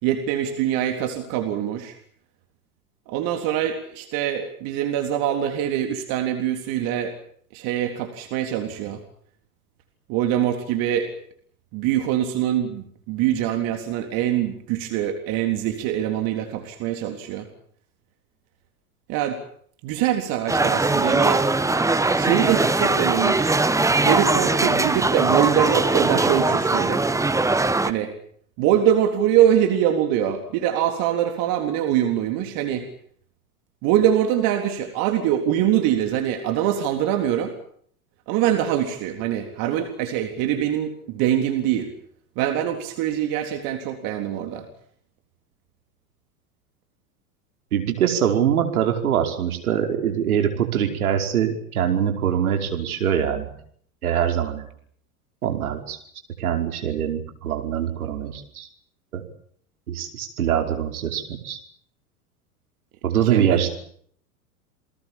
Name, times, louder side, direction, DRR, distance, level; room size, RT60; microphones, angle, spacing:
voice 1, 0.0-1.9 3.1-7.1 7.5-9.0 10.1-11.1 11.7-17.5 19.1-19.4 19.8-21.4 22.1-23.5 24.0-27.0 27.8-28.1 28.6-32.9 33.8-37.5 38.3-41.9 42.4-44.7 63.2-63.7, right 10 dB, 45° right, 5 dB, 3.8 m, -23 dB
sound 1, 20.5-27.9, right 2 dB, 5° right, 1.5 m, -20 dB
voice 2, 47.7-53.5 54.0-54.7 55.4-56.0 56.4-58.7 59.1-59.2 59.9-61.6 63.0-63.7, right 9 dB, 70° right, 5 dB, 5.4 m, -23 dB
28.5 x 21.0 x 7.4 m, 0.62 s
figure-of-eight pair, 90°, 45 cm